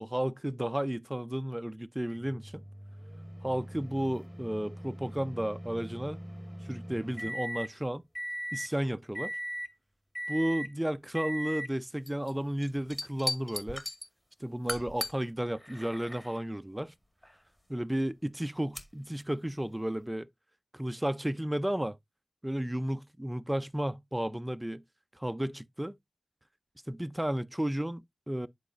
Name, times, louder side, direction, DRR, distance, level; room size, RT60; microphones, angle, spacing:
voice 1, 0.0-2.6 3.4-6.2 6.6-8.0 8.5-9.3 10.3-13.8 14.4-16.9 17.7-20.3 20.7-22.0 22.4-24.8 25.2-25.9 26.9-28.5, right 1 dB, 10° right, 0.5 m, -33 dB
sound 1, 2.1-7.7 8.1-8.7 9.1-9.7 10.1-10.7 11.1-11.7 12.1-12.3 12.6-14.1 14.7-15.1 15.6-16.4 17.2-17.3 18.7-18.8, equal, 15° left, 1.8 m, -39 dB
10.5 x 4.8 x 2.5 m
cardioid pair, 50°, 0 cm